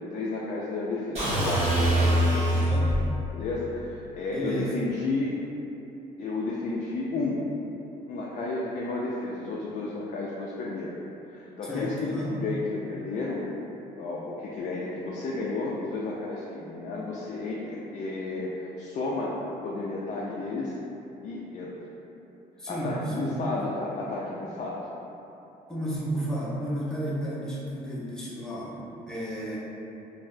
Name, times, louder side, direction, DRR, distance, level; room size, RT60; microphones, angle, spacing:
voice 1, 0.0-2.6 3.3-5.3 6.2-7.4 8.1-10.9 11.3-13.4 14.0-20.7 21.2-21.8 22.7-24.8, left 3 dB, 45° left, -4 dB, 0.4 m, -32 dB
sound 1, 1.2-3.1, right 1 dB, 40° right, 1.2 m, -23 dB
voice 2, 2.4-2.9 4.3-4.7 11.6-12.3 22.6-23.4 25.7-29.6, right 1 dB, 5° left, -7 dB, 0.6 m, -32 dB
3.9 x 2.0 x 2.5 m, 3.0 s
cardioid pair, 110°, 17 cm